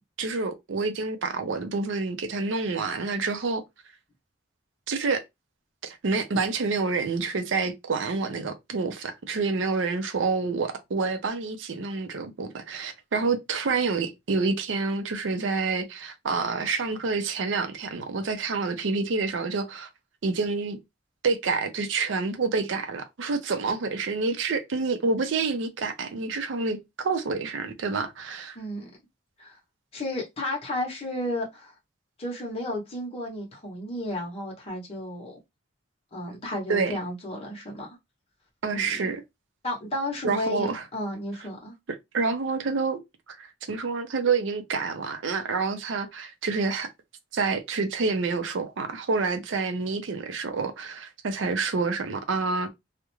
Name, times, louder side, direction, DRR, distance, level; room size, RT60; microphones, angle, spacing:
voice 1, 0.2-3.6 4.9-5.2 5.8-19.9 20.2-20.8 21.2-28.6 36.7-37.0 38.6-39.2 40.2-40.8 41.9-43.0 43.3-46.9 47.3-52.7, right 4 dB, 85° right, 0.5 m, -28 dB
voice 2, 28.5-28.9 29.4-29.6 29.9-31.7 32.2-35.4 36.1-37.9 38.7-39.1 39.6-41.7, left 1 dB, 35° left, 0.8 m, -33 dB
2.3 x 2.1 x 3.0 m
head